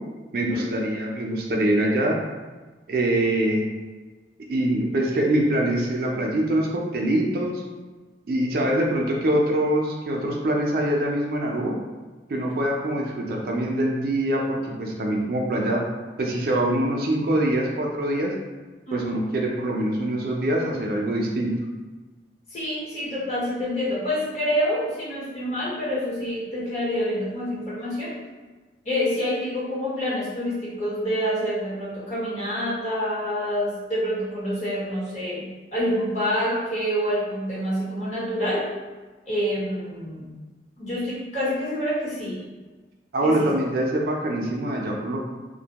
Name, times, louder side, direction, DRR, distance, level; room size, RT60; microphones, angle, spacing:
voice 1, 0.3-2.2 2.9-3.7 4.5-7.6 8.3-11.8 12.3-15.8 16.2-18.3 18.9-21.5 43.1-45.2, right 1 dB, 55° right, -1 dB, 0.4 m, -24 dB
voice 2, 22.5-28.1 28.8-38.7 39.3-40.3 40.8-42.4 43.2-43.5, equal, 40° left, -9 dB, 0.9 m, -27 dB
2.5 x 2.1 x 2.8 m, 1.3 s
head